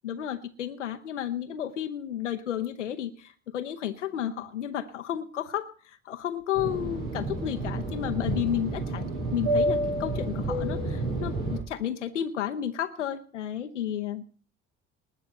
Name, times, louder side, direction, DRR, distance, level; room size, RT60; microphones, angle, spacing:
voice 1, 0.0-14.2, left 10 dB, 90° left, 8 dB, 0.7 m, -32 dB
Fixed-wing aircraft airplane, 6.5-11.6, right 1 dB, 65° right, 5.8 m, -29 dB
19.5 x 6.5 x 7.9 m, 0.44 s
hypercardioid pair, 55°, 35 cm